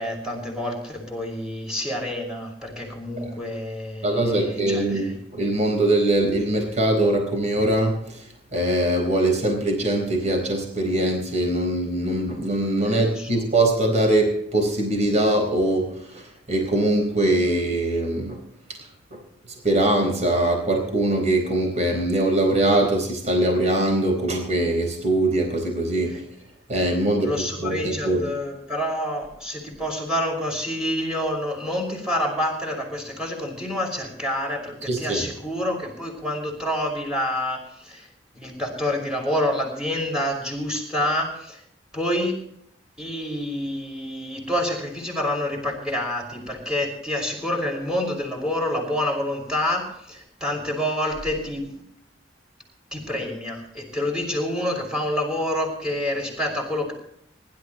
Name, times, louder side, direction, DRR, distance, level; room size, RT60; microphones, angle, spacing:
voice 1, 0.0-4.8 12.9-13.4 27.2-38.1 38.3-41.6 41.9-42.3 43.0-51.7 52.9-56.9, left 1 dB, 5° right, 0 dB, 5.7 m, -27 dB
voice 2, 4.0-8.2 8.5-18.4 19.1-19.2 19.6-26.2 26.7-28.3 34.8-35.3, right 1 dB, 40° right, 2 dB, 4.3 m, -22 dB
25.0 x 12.5 x 3.1 m, 0.70 s
head